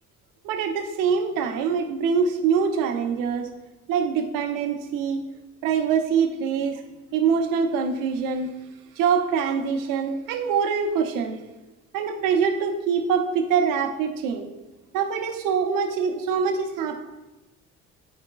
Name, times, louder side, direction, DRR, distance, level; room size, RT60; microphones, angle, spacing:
voice 1, 0.4-3.5 3.9-5.2 5.6-6.8 7.1-8.5 9.0-11.4 11.9-14.5 14.9-16.9, right 6 dB, 85° right, 5 dB, 0.7 m, -24 dB
8.7 x 4.8 x 2.3 m, 1.1 s
supercardioid pair, 60°, 32 cm